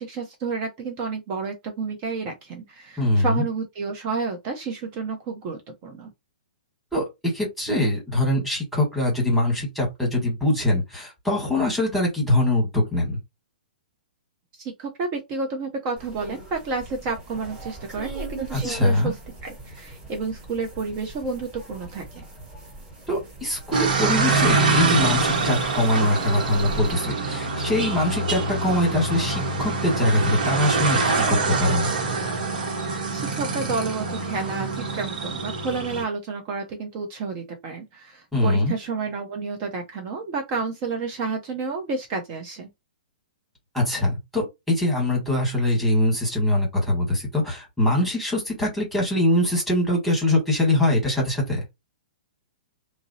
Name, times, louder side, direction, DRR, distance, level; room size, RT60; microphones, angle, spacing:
voice 1, 0.0-6.1 14.5-19.2 19.4-22.2 33.1-42.7, right 4 dB, 40° right, 0.7 m, -30 dB
voice 2, 3.0-3.4 6.9-7.0 7.3-13.2 18.5-19.1 23.1-31.9 38.3-38.7 43.7-51.6, left 1 dB, ahead, 1.4 m, -23 dB
sound 1, 16.0-26.9, right 2 dB, 20° right, 1.4 m, -41 dB
sound 2, 23.7-36.0, right 3 dB, 65° right, 0.9 m, -25 dB
2.5 x 2.0 x 2.6 m
hypercardioid pair, 135°, 5 cm